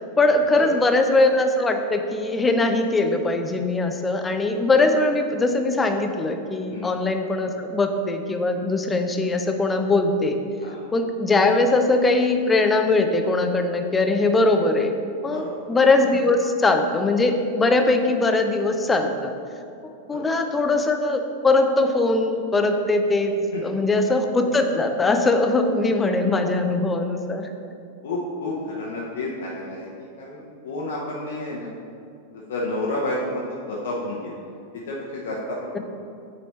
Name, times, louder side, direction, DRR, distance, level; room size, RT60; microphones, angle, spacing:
voice 1, 0.2-10.4 10.9-14.9 15.2-19.3 20.1-23.4 23.6-27.5 35.7-35.8, left 2 dB, 15° left, 5 dB, 0.5 m, -21 dB
voice 2, 15.3-15.6 20.1-20.3 23.5-23.6 28.0-29.9 30.2-31.7 32.5-34.2 34.7-35.8, left 2 dB, 60° left, -4 dB, 0.8 m, -30 dB
8.3 x 4.1 x 3.1 m, 2.5 s
figure-of-eight pair, 90°, 0 cm